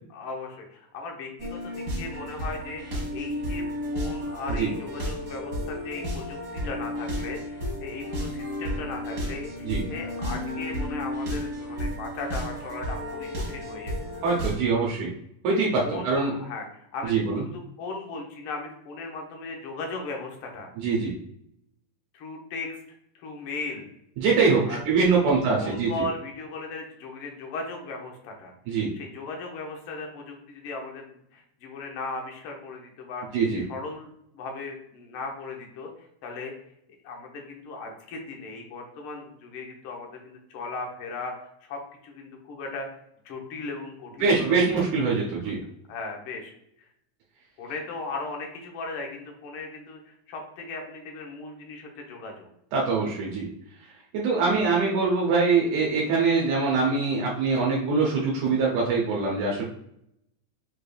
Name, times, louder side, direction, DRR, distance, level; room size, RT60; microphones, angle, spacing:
voice 1, 0.1-14.1 15.8-17.2 17.4-20.7 22.1-22.8 23.1-23.9 24.7-24.8 25.2-33.2 33.7-36.5 37.0-42.9 43.2-44.7 45.2-45.5 45.9-46.9 47.6-52.5 54.4-54.6, left 3 dB, 80° left, 2 dB, 1.2 m, -37 dB
sound 1, 1.4-14.5, equal, 45° right, 1.3 m, -32 dB
voice 2, 14.2-15.1 15.4-16.3 17.1-17.4 20.8-21.1 24.2-26.0 28.7-28.9 33.3-33.6 44.2-45.6 52.7-53.5 54.1-59.6, right 4 dB, 80° right, -3 dB, 2.2 m, -23 dB
6.4 x 3.3 x 2.3 m, 0.75 s
omnidirectional pair, 3.5 m